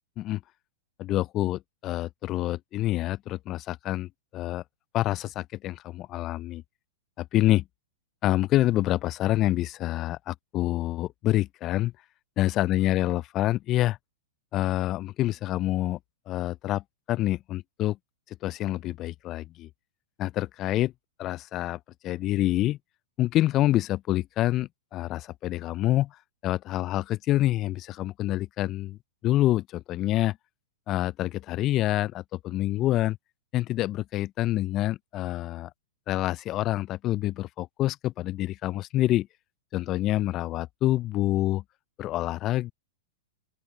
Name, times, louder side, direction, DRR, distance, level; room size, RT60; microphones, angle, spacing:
voice 1, 1.0-4.6 4.9-6.6 7.2-7.6 8.2-11.9 12.4-14.0 14.5-16.0 16.3-16.8 17.1-18.0 18.4-19.7 20.2-20.9 21.2-22.8 23.2-26.1 26.4-29.0 29.2-30.4 30.9-33.2 33.5-35.7 36.1-39.3 39.7-41.6 42.0-42.7, left 15 dB, 35° left, 0.5 m, -27 dB
open air
hypercardioid pair, 110°, 0 cm